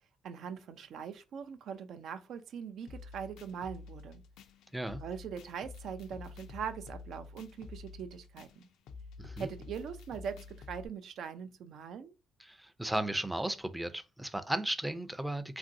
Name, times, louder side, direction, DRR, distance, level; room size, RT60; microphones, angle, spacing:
voice 1, 0.2-4.2 5.0-8.7 9.4-12.1, right 7 dB, 70° right, 0.4 m, -42 dB
sound 1, 2.9-10.9, left 4 dB, 85° left, 0.3 m, -49 dB
voice 2, 9.2-9.5 12.4-15.6, right 1 dB, 10° right, 0.4 m, -35 dB
2.9 x 2.5 x 2.6 m
cardioid pair, 90°, 0 cm